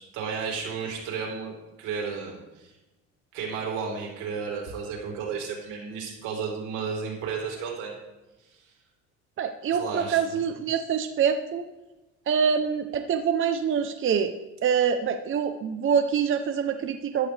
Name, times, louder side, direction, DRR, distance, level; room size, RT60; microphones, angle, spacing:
voice 1, 0.0-1.5 1.8-2.4 2.6-2.7 3.3-7.9 9.7-10.4, right 5 dB, 90° right, 0 dB, 4.0 m, -33 dB
voice 2, 9.4-11.6 12.3-14.3 14.6-17.3, right 7 dB, 40° right, 7 dB, 0.8 m, -25 dB
14.5 x 12.0 x 3.4 m, 1.1 s
cardioid pair, 125°, 30 cm